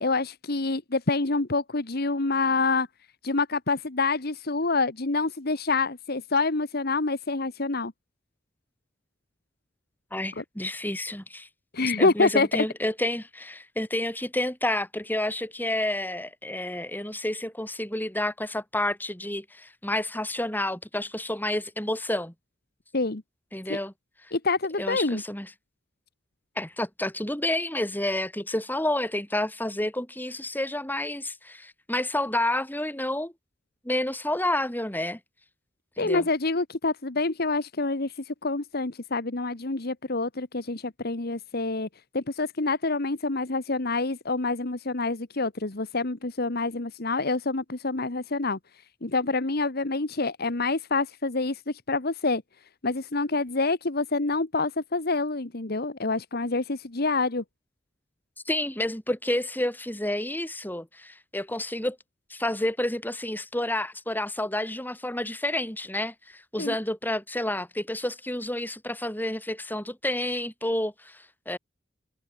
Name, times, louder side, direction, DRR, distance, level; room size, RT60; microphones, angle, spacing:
voice 1, 0.0-2.9 3.2-7.9 10.4-10.5 11.7-12.6 22.9-23.2 23.7-23.8 24.3-25.2 36.0-41.9 42.1-48.6 49.0-52.4 52.8-57.4 66.6-66.7, left 3 dB, 55° left, 1.4 m, -27 dB
voice 2, 10.1-11.5 12.0-22.3 23.5-23.9 24.8-25.5 26.6-33.3 33.8-35.2 36.0-36.3 58.5-62.0 62.3-71.6, left 1 dB, 10° left, 5.8 m, -30 dB
head